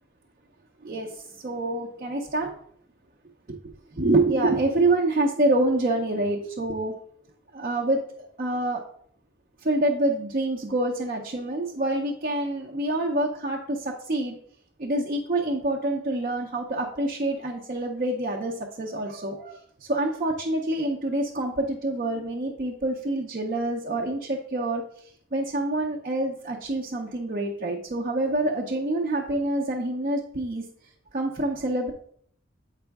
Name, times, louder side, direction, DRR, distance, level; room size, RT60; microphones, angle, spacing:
voice 1, 0.8-2.5 4.0-6.9 7.5-8.8 9.6-14.3 14.8-24.8 25.3-30.6 31.1-31.9, right 2 dB, 45° right, 0 dB, 0.7 m, -26 dB
7.8 x 4.9 x 3.5 m, 0.63 s
head